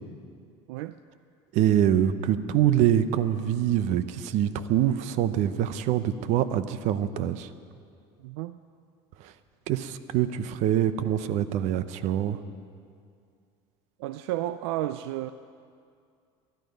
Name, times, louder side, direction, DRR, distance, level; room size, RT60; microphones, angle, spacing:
voice 1, 1.5-7.5 9.2-9.3 9.7-12.4, right 11 dB, 60° right, 0.8 m, -25 dB
voice 2, 8.2-8.6 14.0-15.3, right 14 dB, 85° right, 0.4 m, -32 dB
21.5 x 11.5 x 5.3 m
supercardioid pair, 125°, 13 cm